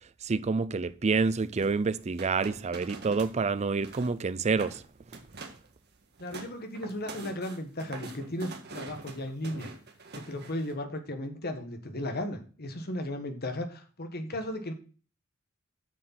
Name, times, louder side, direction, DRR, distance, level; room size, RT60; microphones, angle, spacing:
voice 1, 0.2-4.8, right 4 dB, 30° right, 0.4 m, -28 dB
sound 1, 1.5-3.4 3.7-4.2 4.5-4.8 5.1-5.7 6.0-10.7, right 3 dB, 50° right, 1.7 m, -44 dB
voice 2, 6.2-9.7 10.1-14.7, left 1 dB, 50° left, 1.4 m, -35 dB
7.6 x 6.6 x 5.9 m
head